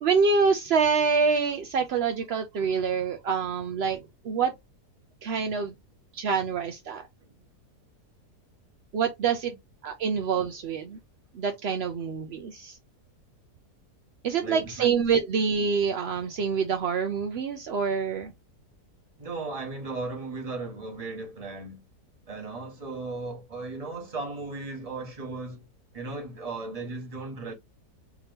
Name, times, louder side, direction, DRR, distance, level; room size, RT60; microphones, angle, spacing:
voice 1, 0.0-4.5 5.2-5.7 6.1-7.1 8.9-9.5 9.8-11.0 11.3-12.8 14.2-18.3, right 5 dB, 70° right, 0.6 m, -26 dB
voice 2, 14.4-14.9 19.2-21.8 22.3-25.7 25.9-27.5, right 3 dB, 25° right, 1.1 m, -36 dB
3.5 x 2.8 x 3.4 m
omnidirectional pair, 1.7 m